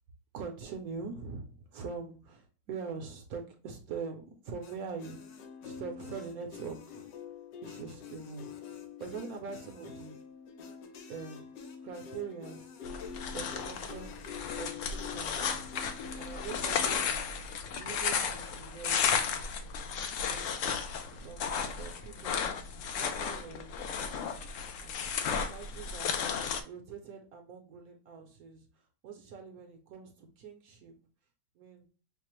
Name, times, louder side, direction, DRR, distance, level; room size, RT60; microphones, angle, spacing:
voice 1, 0.3-7.1 7.6-10.2 11.1-11.5 11.8-12.7 13.2-14.1 14.6-15.7 16.2-17.4 17.8-19.5 20.2-20.8 21.1-22.4 22.8-24.2 24.8-25.0 25.5-26.3 26.6-28.7 29.0-30.9 31.6-31.9, right 5 dB, 65° right, 3 dB, 1.0 m, -43 dB
sound 1, 4.6-17.1, left 7 dB, 90° left, 1.4 m, -46 dB
sound 2, 12.8-26.6, left 6 dB, 75° left, 0.7 m, -34 dB
5.7 x 2.0 x 3.0 m, 0.38 s
omnidirectional pair, 1.8 m